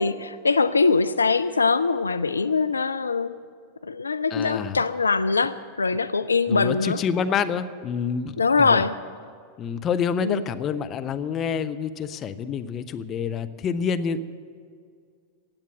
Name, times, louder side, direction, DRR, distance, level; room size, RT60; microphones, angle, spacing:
voice 1, 0.0-3.4 3.9-7.0 8.4-8.9 10.2-10.4, left 4 dB, 75° left, 12 dB, 0.3 m, -22 dB
voice 2, 4.3-4.8 6.5-8.9 9.6-14.2, left 6 dB, 30° left, 10 dB, 0.7 m, -27 dB
16.5 x 8.9 x 7.5 m, 2.2 s
figure-of-eight pair, 90°, 0 cm